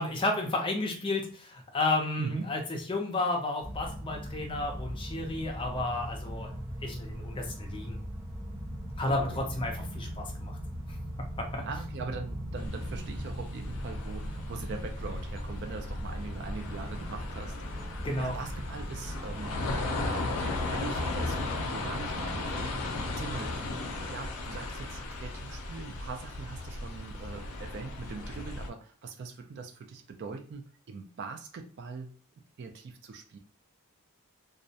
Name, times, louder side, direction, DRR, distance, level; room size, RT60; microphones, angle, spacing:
voice 1, 0.0-6.5 6.8-8.0 9.0-10.6 11.4-11.6 18.0-18.4, left 2 dB, 25° left, 2 dB, 0.5 m, -32 dB
voice 2, 2.2-2.5 9.1-9.4 9.8-9.9 11.6-17.9 18.2-19.6 20.0-32.1 32.6-33.4, right 4 dB, 50° right, 5 dB, 0.3 m, -42 dB
sound 1, 3.6-23.5, equal, 20° right, 0.8 m, -40 dB
sound 2, 12.6-28.7, left 2 dB, 75° left, 0.5 m, -36 dB
2.2 x 2.0 x 2.7 m, 0.43 s
head